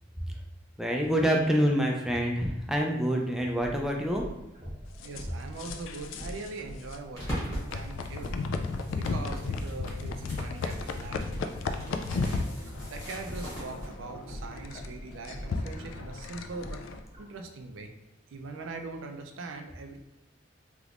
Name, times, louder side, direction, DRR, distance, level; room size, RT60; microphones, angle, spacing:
voice 1, 0.8-4.2, equal, 5° right, 0 dB, 0.3 m, -26 dB
sound 1, 3.5-17.2, equal, 35° right, 0.8 m, -44 dB
sound 2, 5.0-6.5 6.8-7.0 7.7-17.0, left 3 dB, 80° left, 0.3 m, -35 dB
voice 2, 5.0-8.5 9.0-16.8 17.2-17.9 18.3-20.0, right 3 dB, 80° right, 5 dB, 0.4 m, -42 dB
sound 3, 7.1-13.9, equal, 15° left, 1.3 m, -41 dB
3.5 x 2.9 x 2.4 m, 0.91 s
head